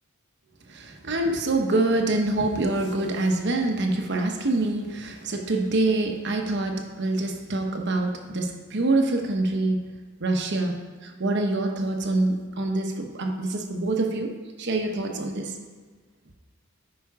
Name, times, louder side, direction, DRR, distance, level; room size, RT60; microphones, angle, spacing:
voice 1, 0.7-9.8 10.2-15.6, right 2 dB, 55° right, 3 dB, 0.9 m, -25 dB
9.5 x 5.1 x 4.7 m, 1.4 s
head